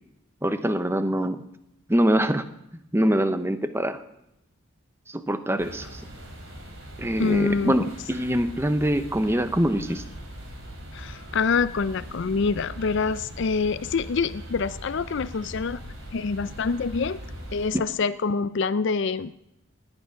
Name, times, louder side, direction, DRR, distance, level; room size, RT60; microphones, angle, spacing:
voice 1, 0.4-1.4 1.9-2.5 2.7-4.0 5.1-6.0 7.0-10.0 17.7-17.8, equal, 10° right, 10 dB, 0.7 m, -24 dB
sound 1, 5.6-17.7, equal, 60° right, 3.5 m, -40 dB
voice 2, 7.2-7.7 10.9-15.8 16.1-17.2 17.5-19.3, left 4 dB, 55° left, 15 dB, 0.4 m, -26 dB
19.0 x 9.8 x 5.8 m, 0.84 s
head